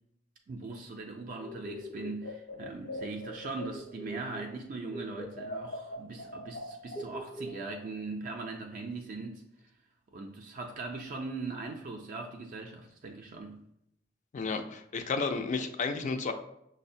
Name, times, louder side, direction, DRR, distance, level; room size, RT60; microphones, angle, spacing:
voice 1, 0.5-9.5 10.1-13.6, right 3 dB, 45° right, 0.4 m, -40 dB
sound 1, 1.4-4.6 4.9-7.9, equal, 65° left, 0.7 m, -42 dB
voice 2, 14.3-16.3, left 4 dB, 40° left, 0.4 m, -32 dB
6.1 x 2.1 x 2.6 m
head